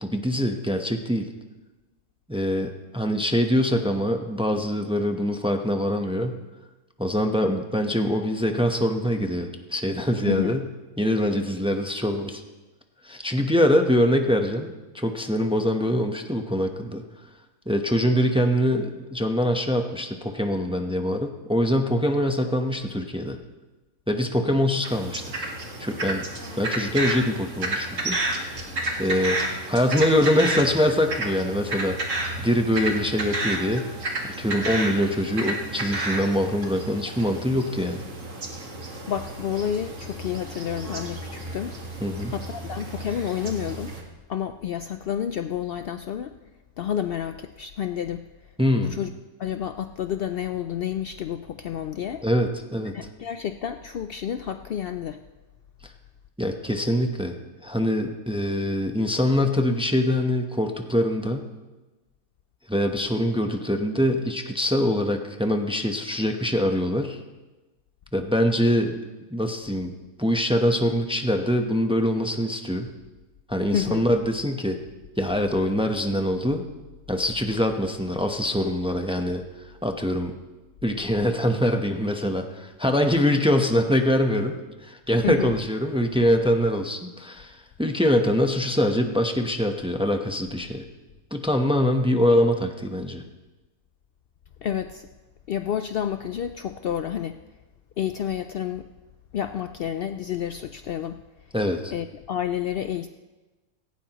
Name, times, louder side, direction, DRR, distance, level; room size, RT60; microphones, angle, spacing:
voice 1, 0.0-1.3 2.3-6.4 7.0-10.6 11.0-12.4 13.0-17.0 17.7-23.4 24.1-25.2 25.8-26.3 26.6-28.1 29.0-29.4 29.7-33.9 34.4-38.0 42.0-42.3 48.6-49.0 52.2-52.9 55.8-55.9 56.4-57.3 57.6-61.5 62.7-67.2 68.1-69.0 69.3-69.9 70.2-72.9 73.5-74.8 75.2-76.6 77.1-79.4 79.8-80.3 80.8-90.9 91.3-93.2 101.5-101.9, equal, 5° right, 4 dB, 0.7 m, -24 dB
voice 2, 10.3-10.6 39.1-41.8 42.3-44.0 44.3-46.3 46.8-48.2 48.8-49.1 49.4-52.2 52.9-55.2 73.7-74.0 85.2-85.5 94.6-95.1 95.5-97.4 98.0-98.9 99.3-101.2 101.9-103.1, left 9 dB, 85° left, 8 dB, 0.5 m, -30 dB
sound 1, 24.8-44.0, right 2 dB, 55° right, 2.0 m, -31 dB
17.5 x 16.5 x 3.0 m, 1.2 s
omnidirectional pair, 1.5 m